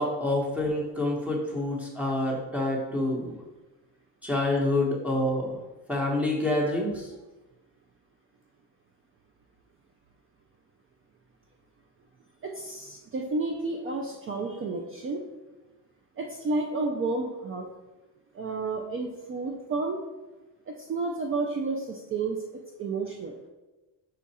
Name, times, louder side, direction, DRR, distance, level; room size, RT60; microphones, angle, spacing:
voice 1, 0.0-3.3 4.2-5.5 5.9-7.1, left 1 dB, 5° right, -2 dB, 1.0 m, -27 dB
voice 2, 12.4-15.3 16.2-17.7 18.3-20.0 20.7-22.4 22.8-23.4, right 3 dB, 30° right, 1 dB, 0.4 m, -31 dB
5.4 x 2.4 x 4.1 m, 1.1 s
cardioid pair, 130°, 44 cm